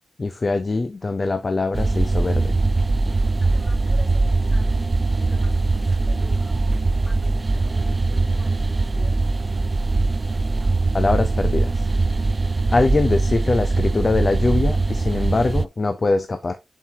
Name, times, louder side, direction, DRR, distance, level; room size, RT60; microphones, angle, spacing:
voice 1, 0.2-2.6 10.9-11.9 12.7-16.6, left 3 dB, 40° left, 0.6 m, -22 dB
sound 1, 1.7-15.6, right 3 dB, 35° right, 0.3 m, -21 dB
voice 2, 3.4-4.9 5.2-6.5 7.0-9.5, left 2 dB, 55° left, 3.0 m, -47 dB
7.3 x 4.6 x 2.8 m
wide cardioid pair, 120°, 0 cm